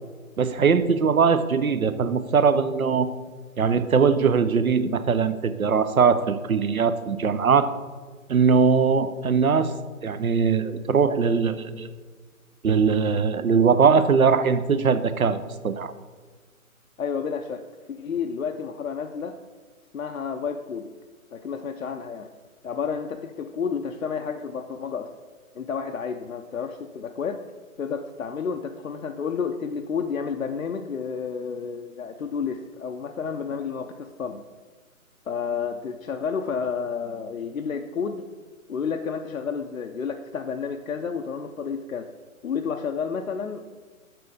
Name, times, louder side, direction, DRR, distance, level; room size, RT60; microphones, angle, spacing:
voice 1, 0.4-3.1 3.6-7.7 8.3-9.7 10.0-11.9 12.6-15.4 15.6-15.9, right 5 dB, 75° right, 12 dB, 0.7 m, -21 dB
voice 2, 17.0-17.6 17.9-19.4 19.9-21.0 21.3-22.3 22.6-25.1 25.5-27.4 27.8-34.5 35.3-38.3 38.7-42.1 42.4-43.7, left 6 dB, 70° left, 5 dB, 0.6 m, -30 dB
6.8 x 6.1 x 4.8 m, 1.4 s
figure-of-eight pair, 135°, 43 cm